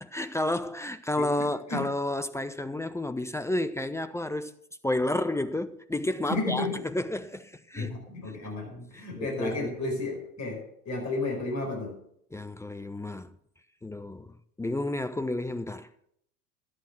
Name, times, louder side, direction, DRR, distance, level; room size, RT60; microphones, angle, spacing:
voice 1, 0.0-4.5 4.8-7.9 8.4-8.5 8.9-9.7 12.3-13.3 13.8-15.9, left 1 dB, 5° left, 0.4 m, -31 dB
voice 2, 1.2-1.8 6.3-6.8 7.8-10.6 10.9-12.0, left 2 dB, 35° left, 5.1 m, -32 dB
13.0 x 8.8 x 5.9 m
figure-of-eight pair, 70°, 45 cm